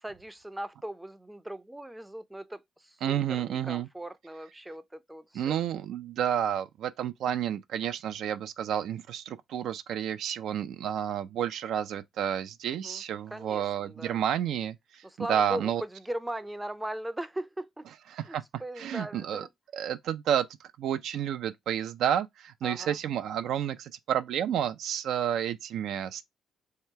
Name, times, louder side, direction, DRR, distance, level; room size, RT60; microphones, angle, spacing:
voice 1, 0.0-5.7 12.7-13.0 13.3-14.2 15.0-17.9 18.2-19.5 22.6-23.0, right 1 dB, 10° right, 0.4 m, -39 dB
voice 2, 3.0-3.9 5.3-15.8 18.1-19.4 19.7-20.5 20.8-26.2, right 9 dB, 80° right, 0.4 m, -30 dB
3.2 x 2.8 x 4.4 m
cardioid pair, 90°, 0 cm